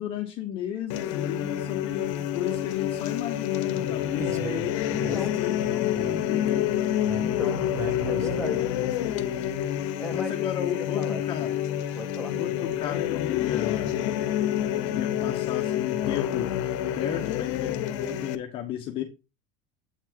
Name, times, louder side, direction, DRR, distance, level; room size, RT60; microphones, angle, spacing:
voice 1, 0.0-4.6 5.0-6.7 10.1-11.6 12.4-13.9 14.9-16.5 16.9-17.7 18.0-19.0, left 10 dB, 35° left, 3 dB, 1.0 m, -34 dB
sound 1, 0.9-18.3, left 11 dB, 75° left, 0.9 m, -28 dB
sound 2, 3.0-3.1 3.4-5.6 5.9-6.2 6.5-6.6 7.0-8.4 8.7-9.1 9.8-9.9, right 4 dB, 20° right, 0.7 m, -38 dB
voice 2, 4.9-5.3 7.1-7.6 8.0-8.7 10.0-10.4 10.7-11.2 11.9-12.3, left 2 dB, ahead, -1 dB, 1.6 m, -35 dB
8.1 x 4.3 x 4.5 m, 0.27 s
cardioid pair, 175°, 16 cm